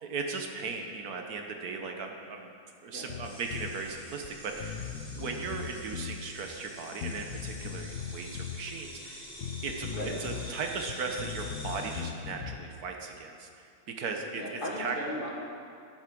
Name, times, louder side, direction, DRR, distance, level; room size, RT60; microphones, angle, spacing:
voice 1, 0.0-2.5 2.8-4.9 5.2-9.3 9.6-9.9 10.2-15.0, right 4 dB, 75° right, 3 dB, 1.5 m, -37 dB
Bass guitar, 3.1-3.8 4.2-4.3 4.6-6.2 7.0-8.6 9.4-10.5 10.8-12.7, left 7 dB, 65° left, 1.0 m, -39 dB
sound 1, 3.2-12.0, equal, 5° left, 2.0 m, -47 dB
voice 2, 14.3-15.3, left 1 dB, 35° left, -2 dB, 1.6 m, -36 dB
10.5 x 8.5 x 6.1 m, 2.3 s
omnidirectional pair, 1.7 m